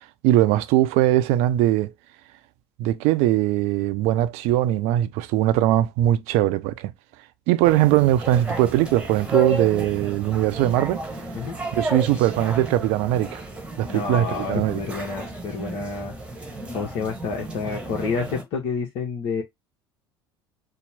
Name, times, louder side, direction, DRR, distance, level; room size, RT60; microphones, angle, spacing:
voice 1, 0.0-1.9 2.8-6.9 7.5-11.0 11.7-13.4 13.8-14.8, right 14 dB, 55° right, 0.5 m, -21 dB
sound 1, 7.6-18.4, right 2 dB, 10° right, 1.1 m, -32 dB
voice 2, 13.9-16.1 16.7-19.4, left 5 dB, 50° left, 0.9 m, -29 dB
4.3 x 2.0 x 3.3 m
figure-of-eight pair, 70°, 13 cm